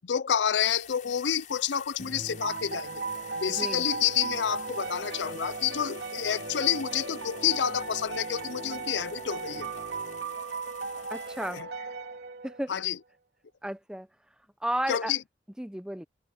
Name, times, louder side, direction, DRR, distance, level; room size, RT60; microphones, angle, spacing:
voice 1, 0.0-3.0 3.4-9.7 11.5-11.7 12.7-13.0 14.9-15.2, left 9 dB, 90° left, 0.5 m, -29 dB
sound 1, 0.6-11.6, left 10 dB, 45° left, 7.8 m, -50 dB
Musical instrument, 2.0-10.5, right 1 dB, 45° right, 1.9 m, -47 dB
sound 2, 2.4-12.8, right 4 dB, 80° right, 2.3 m, -37 dB
voice 2, 11.1-11.6 12.4-12.8 13.6-14.1 14.6-15.1 15.6-16.0, right 1 dB, 5° right, 0.6 m, -33 dB
head